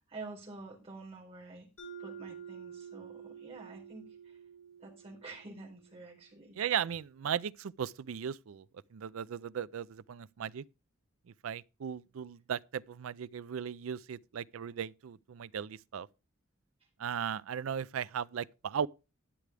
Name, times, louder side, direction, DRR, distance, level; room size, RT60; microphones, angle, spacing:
voice 1, 0.0-1.7 2.0-4.1 4.8-6.5, right 3 dB, 30° right, 4.4 m, -48 dB
Mallet percussion, 1.8-6.3, right 7 dB, 80° left, 5.9 m, -49 dB
voice 2, 6.6-8.6 8.9-10.6 11.4-16.1 17.0-18.9, right 8 dB, 80° right, 0.4 m, -37 dB
11.5 x 9.5 x 3.4 m
head